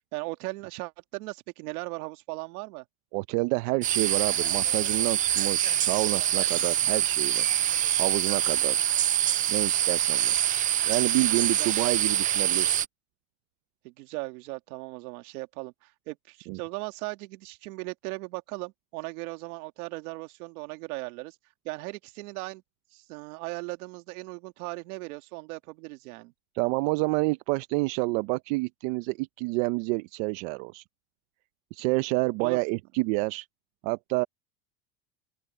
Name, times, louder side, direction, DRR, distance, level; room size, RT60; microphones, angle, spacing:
voice 1, 0.1-2.8 11.5-11.7 13.8-21.4 21.6-22.6 22.9-26.3 32.4-32.6, right 23 dB, 85° right, 2.2 m, -38 dB
voice 2, 3.1-7.5 8.0-8.8 9.5-10.3 10.9-12.8 16.5-16.6 26.5-30.8 31.7-33.5 33.8-34.2, right 25 dB, 65° right, 0.8 m, -28 dB
sound 1, 3.8-12.9, right 11 dB, 20° right, 0.3 m, -25 dB
open air
cardioid pair, 145°, 43 cm